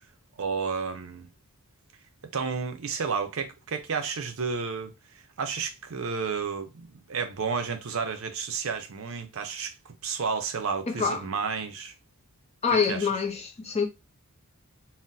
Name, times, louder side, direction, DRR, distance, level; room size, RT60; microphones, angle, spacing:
voice 1, 0.4-1.3 2.3-11.9 12.7-13.1, right 5 dB, 65° right, 0.5 m, -32 dB
voice 2, 10.9-11.2 12.6-13.9, left 5 dB, 30° left, 0.5 m, -26 dB
4.1 x 2.0 x 2.6 m
head